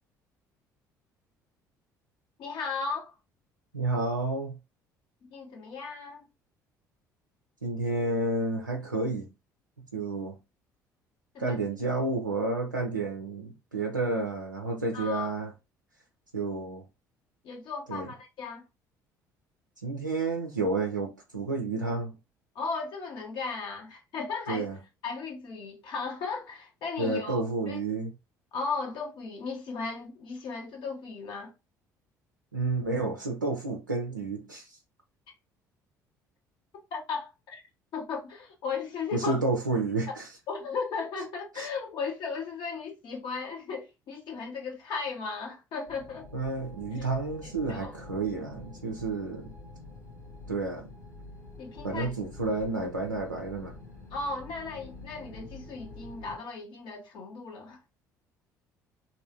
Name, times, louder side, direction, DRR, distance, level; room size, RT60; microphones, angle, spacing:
voice 1, 2.4-3.1 5.3-6.2 11.3-11.6 14.9-15.3 17.4-18.6 22.5-24.7 25.0-27.8 28.5-31.5 36.9-37.6 37.9-39.4 40.1-40.2 40.5-46.3 46.9-47.0 47.4-47.9 51.6-52.1 54.1-58.0, left 4 dB, 50° left, 0.9 m, -36 dB
voice 2, 3.7-4.6 7.6-9.3 9.9-10.4 11.4-15.5 16.3-16.8 17.9-18.1 19.8-22.2 24.5-24.8 27.0-28.1 32.5-34.8 39.1-40.3 41.5-41.7 46.3-49.5 50.5-50.9 51.8-53.7, right 3 dB, 85° right, 0.4 m, -30 dB
sound 1, 45.9-56.4, left 2 dB, 85° left, 1.0 m, -47 dB
3.1 x 2.6 x 2.7 m
figure-of-eight pair, 55°, 10 cm